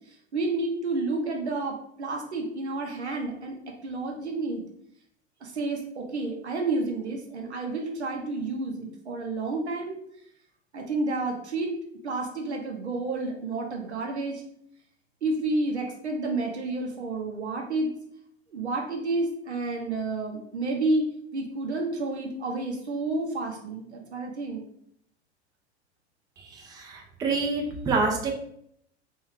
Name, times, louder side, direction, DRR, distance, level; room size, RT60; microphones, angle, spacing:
voice 1, 0.3-4.6 5.4-10.0 10.7-11.7 12.0-14.4 15.2-17.9 18.5-24.6, right 2 dB, 75° right, 1 dB, 0.8 m, -30 dB
voice 2, 26.4-28.3, right 3 dB, 10° right, 2 dB, 0.4 m, -27 dB
3.1 x 2.6 x 3.4 m, 0.71 s
figure-of-eight pair, 80°, 33 cm